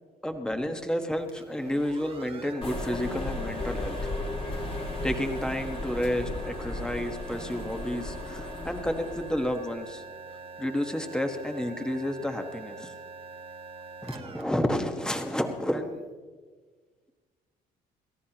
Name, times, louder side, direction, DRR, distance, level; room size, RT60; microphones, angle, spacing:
voice 1, 0.2-4.1 5.0-10.0 10.6-12.9 14.0-16.0, left 1 dB, 5° left, 5 dB, 1.4 m, -31 dB
sound 1, 1.2-15.8, right 3 dB, 35° right, 1.3 m, -44 dB
sound 2, 2.6-9.6, left 2 dB, 30° left, 2.0 m, -35 dB
30.0 x 14.0 x 3.0 m, 1.5 s
cardioid pair, 110°, 17 cm